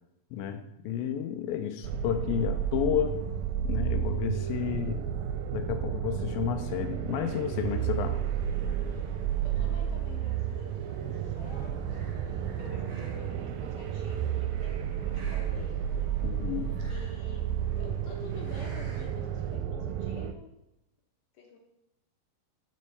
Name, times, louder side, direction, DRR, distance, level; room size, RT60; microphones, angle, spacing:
voice 1, 0.3-3.2 3.6-5.0 5.5-8.2 16.2-16.7, left 10 dB, 90° left, 7 dB, 2.4 m, -31 dB
sound 1, 1.8-20.3, right 9 dB, 85° right, 2.4 m, -32 dB
sound 2, 7.5-19.6, equal, 30° right, 2.9 m, -52 dB
voice 2, 9.4-12.3 12.6-15.8 16.8-17.5 17.8-20.6 21.3-21.6, left 3 dB, 70° left, 2 dB, 2.4 m, -49 dB
7.6 x 5.4 x 6.8 m, 0.90 s
omnidirectional pair, 4.1 m